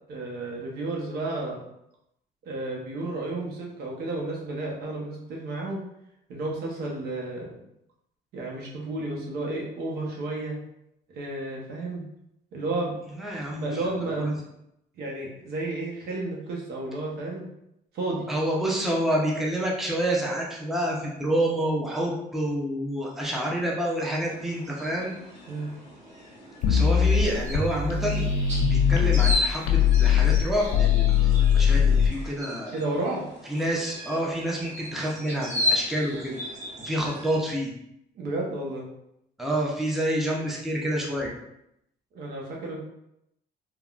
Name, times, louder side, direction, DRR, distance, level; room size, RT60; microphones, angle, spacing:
voice 1, 0.1-1.6 2.4-5.8 6.3-7.5 8.3-10.6 11.1-12.0 12.5-12.9 13.5-14.4 15.0-17.5 17.9-18.3 25.5-25.7 32.7-33.3 38.1-38.9 42.1-42.8, right 2 dB, 70° right, -2 dB, 0.9 m, -32 dB
voice 2, 13.1-13.7 14.2-14.3 18.3-25.1 26.7-28.3 28.7-31.3 31.5-32.7 33.5-36.4 36.8-37.7 39.4-41.3, right 1 dB, ahead, -3 dB, 0.5 m, -28 dB
sound 1, 24.3-37.4, left 2 dB, 45° right, 1.2 m, -35 dB
sound 2, 26.6-29.3 29.7-32.1, left 8 dB, 80° left, 0.5 m, -21 dB
3.5 x 2.2 x 2.4 m, 0.81 s
cardioid pair, 110°, 17 cm